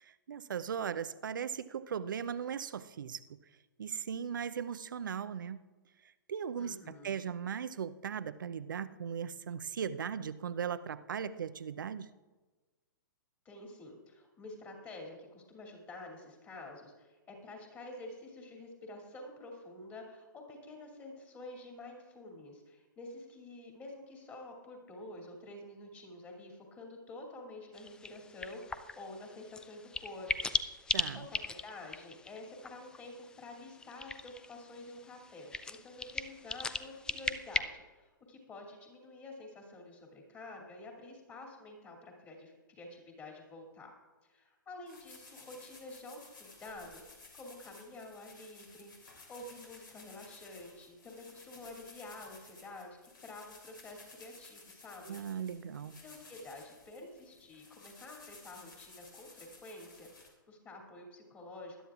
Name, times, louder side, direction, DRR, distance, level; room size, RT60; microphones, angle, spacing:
voice 1, 0.0-3.2 3.8-5.6 6.3-12.1 30.9-31.3 55.1-56.0, right 7 dB, 70° right, 14 dB, 0.6 m, -38 dB
voice 2, 6.6-7.2 13.4-30.5 30.8-43.9 44.2-55.2 56.0-61.9, left 2 dB, 25° left, 1 dB, 2.6 m, -49 dB
sound 1, 27.7-37.6, left 4 dB, 5° left, 0.3 m, -39 dB
sound 2, 44.9-60.3, left 3 dB, 75° left, 3.2 m, -56 dB
20.5 x 11.5 x 2.4 m, 1.3 s
figure-of-eight pair, 115°, 11 cm